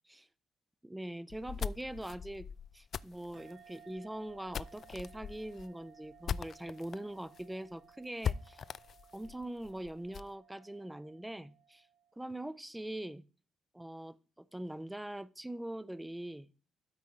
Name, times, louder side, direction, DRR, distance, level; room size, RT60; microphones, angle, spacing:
voice 1, 0.8-2.5 2.7-8.6 9.1-11.9 12.2-13.2 13.7-16.5, right 1 dB, 5° right, 0.6 m, -42 dB
sound 1, 1.3-7.0 7.3-7.4 7.7-7.8 8.2-10.3, left 7 dB, 55° left, 0.3 m, -40 dB
sound 2, 3.3-12.4, right 8 dB, 70° right, 1.1 m, -60 dB
12.5 x 4.2 x 4.9 m
cardioid pair, 90°, 0 cm